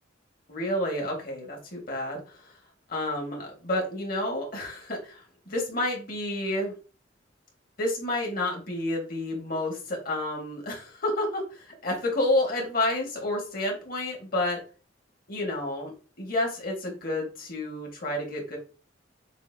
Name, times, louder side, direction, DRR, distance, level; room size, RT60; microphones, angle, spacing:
voice 1, 0.5-2.5 2.9-6.7 7.8-14.6 15.3-15.9 16.2-18.6, left 1 dB, 50° left, 0 dB, 1.8 m, -30 dB
6.8 x 2.7 x 2.8 m, 0.35 s
head